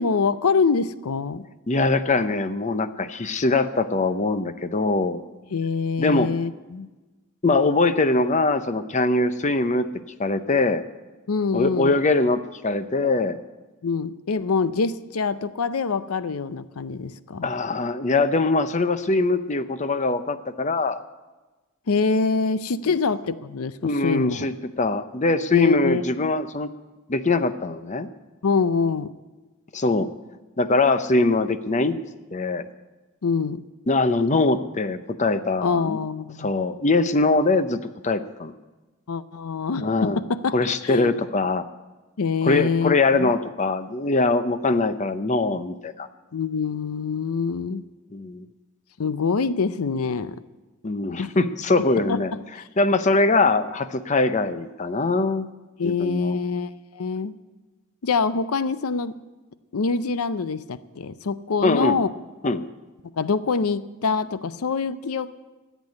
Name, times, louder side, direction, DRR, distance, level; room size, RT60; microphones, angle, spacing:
voice 1, 0.0-1.4 5.5-6.9 11.3-11.9 13.8-17.5 21.9-24.5 25.5-26.0 28.4-29.1 33.2-33.6 35.6-36.5 39.1-40.6 40.8-41.2 42.2-43.3 46.3-47.8 49.0-50.4 51.2-51.3 52.0-52.2 55.8-57.3 58.0-59.2 59.7-62.1 63.2-65.3, left 4 dB, 80° left, 15 dB, 0.6 m, -25 dB
voice 2, 1.7-5.2 6.0-6.3 7.4-9.9 10.2-10.8 11.5-13.4 17.4-21.0 22.9-23.0 23.8-26.7 27.1-28.1 29.7-30.1 30.6-32.0 32.3-32.7 33.9-36.0 36.4-38.5 39.8-40.2 40.5-41.6 42.4-46.1 48.1-48.4 50.8-52.3 52.8-55.5 55.8-56.4 61.6-62.0 62.4-62.6, left 3 dB, 35° left, 12 dB, 0.7 m, -22 dB
14.5 x 8.3 x 9.7 m, 1.2 s
head